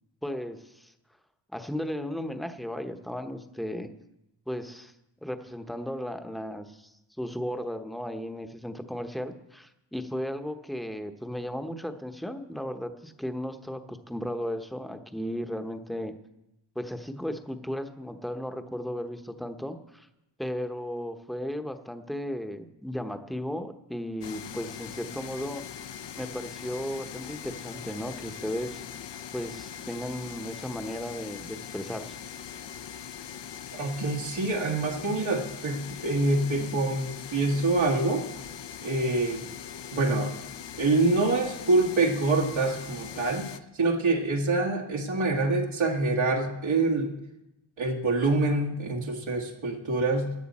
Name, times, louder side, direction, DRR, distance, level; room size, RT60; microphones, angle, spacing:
voice 1, 0.2-0.9 1.5-3.9 4.5-4.9 5.2-6.9 7.2-16.1 16.7-20.1 20.4-25.6 26.2-28.8 29.3-32.2, equal, ahead, 7 dB, 1.0 m, -35 dB
sound 1, 24.2-43.6, left 8 dB, 60° left, 0.8 m, -41 dB
voice 2, 33.7-38.2 38.8-39.5 39.9-40.3 40.8-43.5 43.7-47.1 47.8-50.3, right 2 dB, 75° right, -2 dB, 1.8 m, -26 dB
17.0 x 10.5 x 4.2 m, 0.90 s
wide cardioid pair, 85°, 48 cm